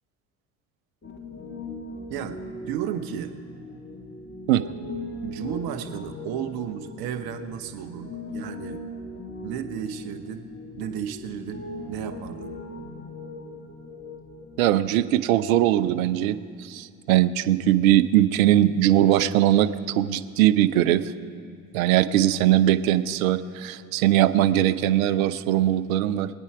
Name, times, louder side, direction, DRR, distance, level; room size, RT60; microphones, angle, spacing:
Piano, 1.0-14.7, left 2 dB, 25° left, 2.1 m, -39 dB
voice 1, 2.1-3.3 5.2-8.8 9.4-12.5, right 9 dB, 60° right, 7 dB, 1.2 m, -34 dB
voice 2, 14.6-21.1 21.7-26.3, right 13 dB, 75° right, 12 dB, 0.7 m, -21 dB
24.0 x 8.8 x 4.9 m, 2.4 s
hypercardioid pair, 60°, 41 cm